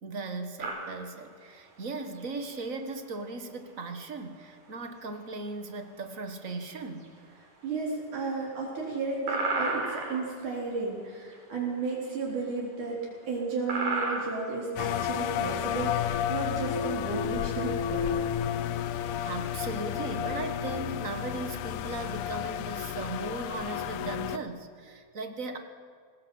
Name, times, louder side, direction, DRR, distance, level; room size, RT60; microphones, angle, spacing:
voice 1, 0.0-7.1 19.2-25.6, right 3 dB, 35° right, 6 dB, 1.3 m, -37 dB
sound 1, 0.6-20.5, right 3 dB, 85° right, 6.3 m, -38 dB
voice 2, 7.6-13.0 13.3-18.1, right 4 dB, 70° right, -4 dB, 5.4 m, -33 dB
sound 2, 14.8-24.4, left 9 dB, 80° left, 2.2 m, -31 dB
24.5 x 20.0 x 7.9 m, 2.1 s
omnidirectional pair, 3.7 m